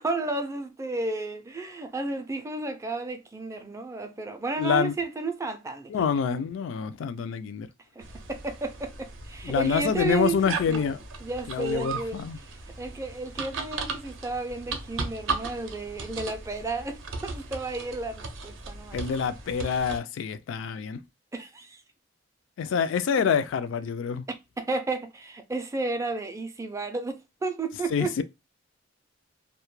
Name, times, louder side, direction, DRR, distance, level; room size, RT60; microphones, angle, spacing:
voice 1, 0.0-6.1 7.9-19.0 21.3-21.8 24.3-28.2, right 3 dB, 15° right, 0.3 m, -33 dB
voice 2, 4.6-4.9 5.9-7.7 9.4-11.0 11.5-12.4 18.9-21.0 22.6-24.2 27.9-28.2, left 6 dB, 70° left, 0.3 m, -26 dB
sound 1, 8.0-20.0, right 4 dB, 75° right, 0.5 m, -37 dB
2.1 x 2.1 x 3.0 m
head